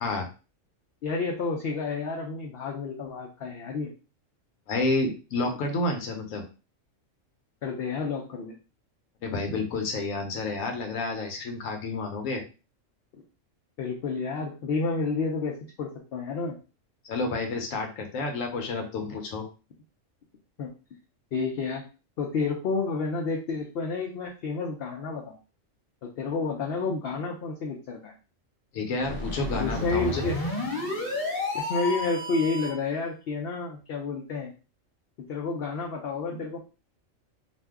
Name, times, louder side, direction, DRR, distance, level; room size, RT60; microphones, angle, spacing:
voice 1, 1.0-3.9 7.6-8.5 13.8-16.6 20.6-20.7 21.3-21.8 22.2-25.4 26.0-28.1 29.5-30.4 31.5-34.5 35.3-36.6, left 4 dB, 60° left, 1 dB, 0.6 m, -30 dB
voice 2, 4.7-6.4 9.2-12.4 17.0-19.5 28.7-30.2, left 3 dB, 85° left, 3 dB, 1.0 m, -30 dB
sound 1, 29.0-32.9, left 2 dB, 40° left, 1.2 m, -31 dB
2.6 x 2.2 x 3.4 m, 0.32 s
omnidirectional pair, 1.3 m